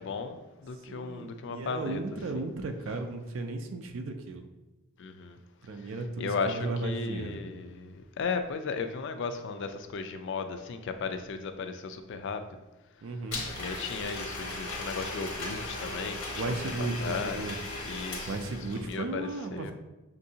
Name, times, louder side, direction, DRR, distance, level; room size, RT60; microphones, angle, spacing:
voice 1, 0.0-2.0 5.0-5.4 5.8-5.9 6.2-12.6 13.6-16.6 17.0-17.6 17.8-18.3 18.7-19.7, left 4 dB, 55° left, 8 dB, 0.3 m, -35 dB
voice 2, 0.9-4.5 5.6-7.4 13.0-13.5 16.4-17.6 18.3-19.7, right 2 dB, 60° right, 5 dB, 0.4 m, -35 dB
Domestic sounds home sounds, 13.3-19.0, left 2 dB, 80° left, 0.9 m, -37 dB
6.2 x 2.6 x 2.7 m, 1.1 s
head